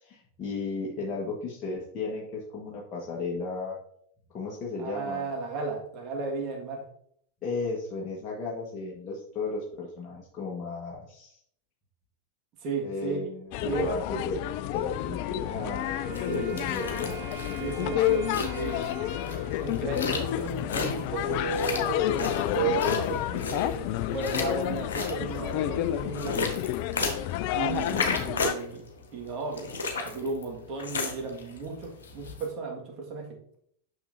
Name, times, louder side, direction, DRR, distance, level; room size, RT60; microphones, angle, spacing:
voice 1, 0.0-3.7 4.3-5.3 7.4-11.4 12.8-17.2 27.8-28.1, left 3 dB, 30° left, -5 dB, 1.5 m, -34 dB
voice 2, 4.8-6.8 12.6-13.3 13.6-13.9 16.3-16.5 17.6-18.8 19.3-26.6 27.0-27.1 27.5-28.8 29.1-29.7 29.9-33.4, right 4 dB, 40° right, 0 dB, 1.8 m, -34 dB
sound 1, 13.5-28.5, left 13 dB, 50° left, 0.3 m, -30 dB
Wind instrument woodwind instrument, 15.5-20.7, right 3 dB, 80° right, 2.3 m, -43 dB
sound 2, 16.1-32.5, left 3 dB, 70° left, 1.3 m, -35 dB
6.6 x 5.9 x 2.7 m, 0.66 s
figure-of-eight pair, 95°, 0 cm